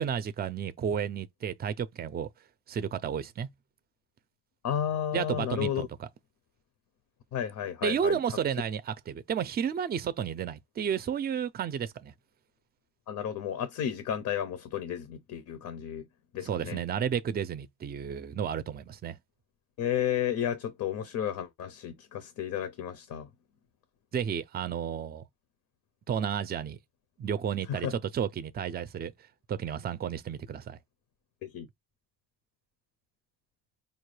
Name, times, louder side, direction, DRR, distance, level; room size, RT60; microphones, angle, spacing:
voice 1, 0.0-2.3 2.7-3.5 5.1-6.1 7.8-12.1 16.4-19.2 24.1-25.2 26.1-26.8 27.2-29.1 29.5-30.8, right 8 dB, 35° right, 0.4 m, -32 dB
voice 2, 4.6-5.9 7.3-8.2 13.1-16.0 16.3-16.8 19.8-23.3 27.7-28.0 31.4-31.7, left 9 dB, 80° left, 0.7 m, -32 dB
5.1 x 2.2 x 3.2 m
cardioid pair, 125°, 30 cm